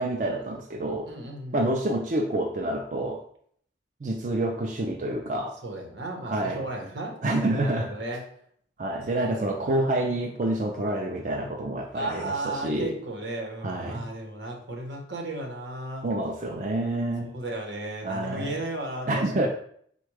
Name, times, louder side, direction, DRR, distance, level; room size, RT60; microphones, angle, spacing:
voice 1, 0.0-1.1 1.5-3.2 4.0-5.5 6.2-6.6 7.2-7.9 8.8-12.9 13.6-14.0 16.0-17.3 18.0-18.5 19.1-19.5, right 1 dB, 45° right, 1 dB, 0.4 m, -28 dB
voice 2, 1.0-1.7 5.6-8.2 10.0-10.2 11.9-16.1 17.2-19.5, right 2 dB, 85° right, 1 dB, 1.1 m, -35 dB
4.2 x 2.3 x 4.7 m, 0.63 s
head